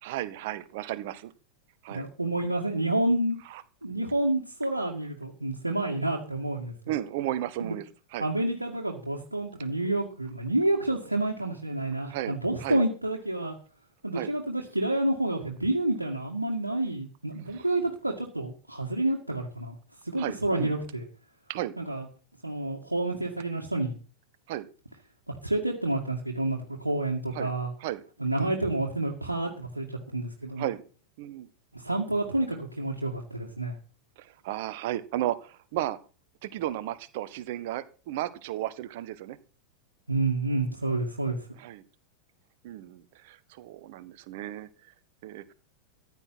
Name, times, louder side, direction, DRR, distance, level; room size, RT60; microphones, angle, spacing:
voice 1, 0.0-1.3 1.8-2.1 3.5-3.6 6.9-8.3 12.1-12.8 14.1-14.3 17.5-17.6 20.2-20.7 21.5-21.7 24.5-24.7 27.3-27.5 27.8-28.0 28.4-28.5 30.6-30.8 31.2-31.5 34.2-36.0 36.4-39.4 41.6-41.8 42.6-44.9 45.2-45.4, right 13 dB, 50° right, 14 dB, 1.4 m, -34 dB
voice 2, 1.9-3.4 3.8-6.7 7.6-7.8 8.2-13.5 14.0-19.7 20.0-21.0 21.8-22.0 22.4-24.0 25.4-27.7 28.2-30.7 31.7-33.8 40.1-41.5, right 2 dB, 85° right, 0 dB, 2.1 m, -29 dB
14.5 x 10.5 x 5.9 m, 0.36 s
figure-of-eight pair, 90°, 0 cm